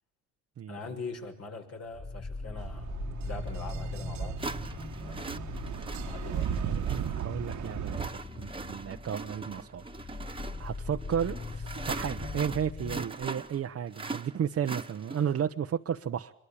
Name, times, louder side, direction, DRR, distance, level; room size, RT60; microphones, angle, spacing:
voice 1, 0.7-2.9 3.2-4.4 5.0-5.7 6.0-6.5 10.4-10.6, left 3 dB, 55° left, 3 dB, 6.6 m, -42 dB
sound 1, 1.9-13.1, left 3 dB, 20° left, 1.4 m, -40 dB
sound 2, 2.6-8.1, right 9 dB, 75° right, 1.7 m, -36 dB
sound 3, 3.5-3.6 4.4-15.4, right 3 dB, 15° right, 1.8 m, -41 dB
voice 2, 7.2-8.1 8.4-9.8 10.6-16.3, right 8 dB, 50° right, 5 dB, 1.1 m, -33 dB
26.0 x 23.0 x 8.7 m, 0.66 s
cardioid pair, 90°, 30 cm